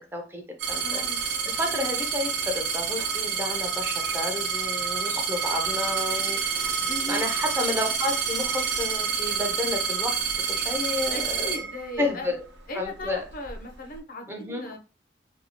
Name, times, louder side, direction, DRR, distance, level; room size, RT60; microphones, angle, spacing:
voice 1, 0.1-11.5 12.0-12.4 12.7-13.2 14.3-14.7, left 2 dB, 15° right, 3 dB, 0.5 m, -31 dB
sound 1, 0.6-12.3 13.1-13.6, right 6 dB, 70° right, 0.8 m, -28 dB
voice 2, 0.8-1.2 6.9-7.2 11.1-12.3 12.7-14.3 14.6-14.8, left 1 dB, 50° left, 4 dB, 0.5 m, -37 dB
2.7 x 2.3 x 2.8 m, 0.34 s
head